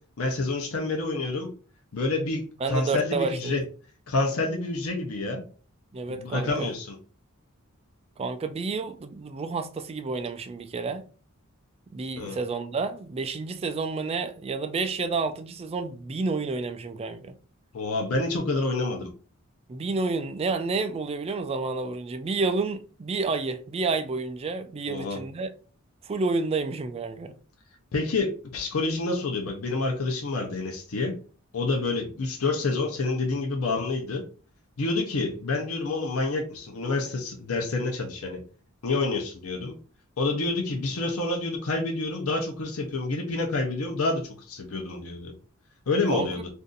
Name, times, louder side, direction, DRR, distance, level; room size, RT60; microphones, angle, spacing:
voice 1, 0.2-1.5 1.9-3.6 4.1-5.4 6.2-6.9 12.2-12.4 17.7-19.1 24.9-25.2 27.9-31.1 31.5-34.2 34.8-38.4 38.8-39.7 40.2-45.3 45.9-46.5, left 3 dB, 90° left, 0.7 m, -28 dB
voice 2, 2.6-3.6 5.9-6.7 8.2-11.0 11.9-17.4 19.7-25.5 26.0-27.4 46.1-46.3, right 4 dB, 30° right, 0.3 m, -30 dB
2.6 x 2.5 x 3.8 m
head